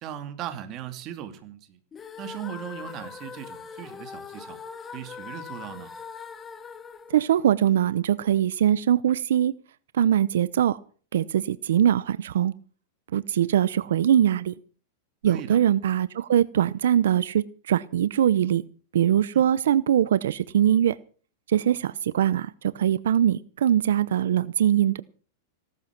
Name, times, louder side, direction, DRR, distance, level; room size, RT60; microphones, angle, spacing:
voice 1, 0.0-1.8 2.2-4.6 4.9-5.9 15.3-15.6 19.3-19.5, right 10 dB, 30° right, 8 dB, 2.4 m, -38 dB
sound 1, 1.9-8.1, left 6 dB, 15° left, 1.0 m, -41 dB
voice 2, 7.1-9.5 9.9-10.8 11.1-12.5 13.1-14.5 15.2-18.6 18.9-20.9 21.5-22.5 22.7-25.0, right 10 dB, 85° right, 17 dB, 0.7 m, -22 dB
17.0 x 13.0 x 5.9 m, 0.41 s
supercardioid pair, 160°, 0 cm